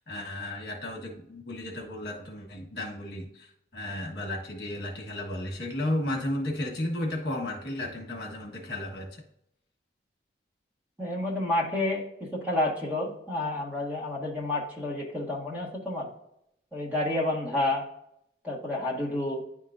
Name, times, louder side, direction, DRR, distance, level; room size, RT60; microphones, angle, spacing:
voice 1, 0.1-9.1, left 1 dB, 60° left, 0 dB, 1.3 m, -34 dB
voice 2, 11.0-12.0 12.3-16.1 16.7-17.8 18.4-19.4, left 1 dB, 10° right, -3 dB, 1.4 m, -29 dB
10.0 x 3.7 x 2.5 m, 0.76 s
head